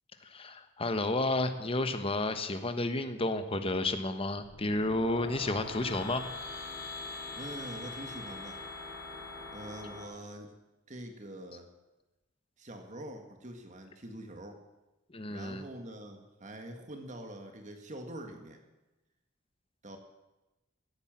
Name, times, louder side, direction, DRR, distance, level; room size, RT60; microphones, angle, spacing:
voice 1, 0.2-6.2 15.1-15.6, left 2 dB, 30° left, 8 dB, 1.1 m, -31 dB
sound 1, 4.4-10.0, left 3 dB, 90° left, 4.9 m, -43 dB
voice 2, 7.4-8.6 9.5-10.5 10.9-11.7 12.6-14.6 15.3-18.6 19.8-20.0, right 1 dB, 40° right, 5 dB, 1.7 m, -44 dB
17.0 x 10.5 x 7.5 m, 1.0 s
head